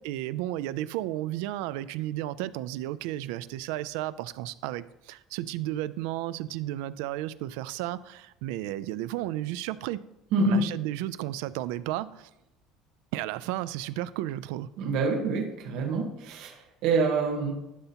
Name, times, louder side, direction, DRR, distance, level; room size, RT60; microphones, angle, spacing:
voice 1, 0.0-10.0 10.4-12.3 13.1-14.7, right 14 dB, 80° right, 0.3 m, -33 dB
voice 2, 10.3-10.7 14.8-17.5, right 3 dB, 65° right, 1.2 m, -26 dB
11.5 x 5.5 x 2.9 m
cardioid pair, 160°, 0 cm